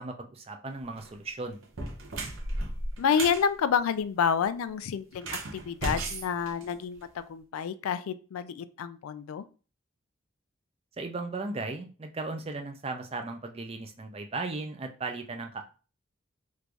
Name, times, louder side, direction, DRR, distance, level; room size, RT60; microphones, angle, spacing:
voice 1, 0.0-1.6 11.0-15.6, right 3 dB, 30° right, 5 dB, 0.4 m, -36 dB
sound 1, 0.8-1.1 1.6-3.4 5.1-7.2, right 2 dB, 70° right, 0.8 m, -35 dB
voice 2, 3.0-9.4, left 7 dB, 85° left, 12 dB, 0.3 m, -29 dB
3.1 x 2.5 x 3.3 m, 0.36 s
head